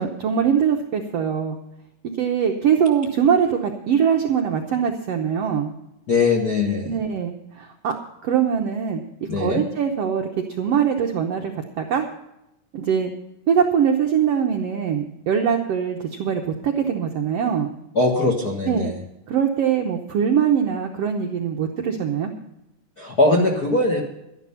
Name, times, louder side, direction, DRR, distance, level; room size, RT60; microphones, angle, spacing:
voice 1, 0.0-1.6 2.2-5.7 6.9-7.9 8.2-9.0 9.3-10.3 10.6-12.1 12.7-13.1 13.5-17.7 18.7-18.9 19.3-22.3, right 7 dB, 75° right, 3 dB, 1.5 m, -22 dB
voice 2, 6.1-6.9 9.3-9.6 17.9-18.9 23.0-24.0, left 2 dB, 50° left, 1 dB, 1.2 m, -20 dB
12.0 x 11.0 x 5.6 m, 0.89 s
omnidirectional pair, 4.0 m